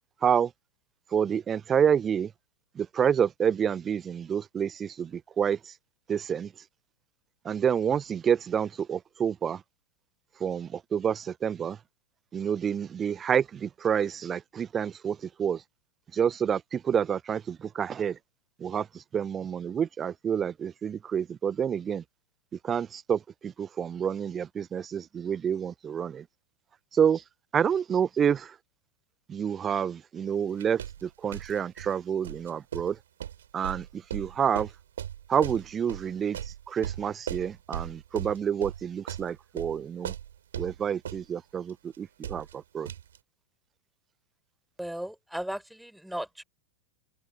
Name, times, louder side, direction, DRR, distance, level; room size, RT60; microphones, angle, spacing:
voice 1, 1.1-2.3 2.7-5.7 6.1-6.5 7.4-9.6 10.4-11.8 12.3-15.6 16.1-18.2 18.6-22.0 22.6-26.2 26.9-27.2 27.5-28.5 29.3-33.0 33.5-34.7 35.3-40.1 40.6-42.9, right 8 dB, 25° right, 1.0 m, -28 dB
sound 1, 30.6-31.9 32.2-41.2 41.7-41.8 41.9-42.0 42.2-42.5 42.8-43.2, right 10 dB, 65° right, 4.6 m, -37 dB
voice 2, 44.8-46.4, right 1 dB, ahead, 5.7 m, -36 dB
figure-of-eight pair, 90°, 0 cm